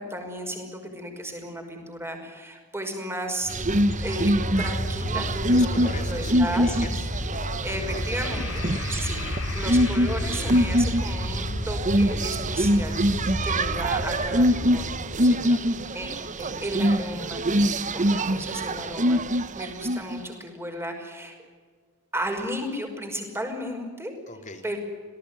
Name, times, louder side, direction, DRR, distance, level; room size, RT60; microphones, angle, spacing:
voice 1, 0.0-3.6 4.0-5.8 6.1-6.8 7.6-15.0 15.9-21.4 22.1-24.1 24.6-24.8, equal, 10° right, 4 dB, 5.6 m, -34 dB
sound 1, 3.4-15.4, left 1 dB, 70° left, 4.2 m, -31 dB
sound 2, 3.5-20.2, equal, 35° right, 1.1 m, -24 dB
voice 2, 5.5-7.0 7.3-8.8 9.7-9.8 13.4-13.6 15.2-15.7 24.3-24.6, left 3 dB, 35° left, 5 dB, 3.7 m, -40 dB
27.0 x 18.5 x 9.8 m, 1.5 s
head